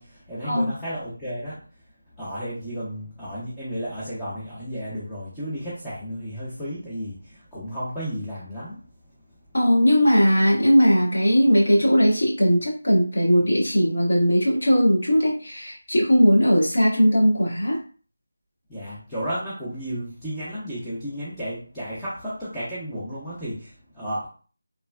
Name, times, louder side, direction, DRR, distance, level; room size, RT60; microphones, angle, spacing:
voice 1, 0.0-1.6 2.2-8.8 18.7-24.3, equal, 5° left, -12 dB, 0.7 m, -33 dB
voice 2, 9.5-17.8, equal, 65° left, -5 dB, 1.3 m, -19 dB
3.2 x 2.1 x 2.2 m, 0.39 s
figure-of-eight pair, 170°, 0 cm